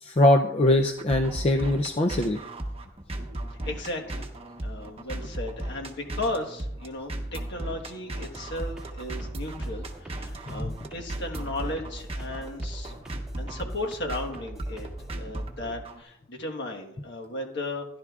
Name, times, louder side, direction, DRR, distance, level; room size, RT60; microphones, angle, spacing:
voice 1, 0.0-2.4 10.5-10.7, left 1 dB, 30° left, 4 dB, 0.5 m, -22 dB
sound 1, 0.6-16.0, right 1 dB, 30° right, 1.1 m, -36 dB
voice 2, 3.7-4.3 4.6-12.9 13.4-14.9 15.1-17.9, left 2 dB, 55° left, 1 dB, 1.4 m, -35 dB
sound 2, 8.3-15.2, right 1 dB, 5° right, 2.2 m, -43 dB
15.5 x 11.0 x 2.4 m, 0.80 s
head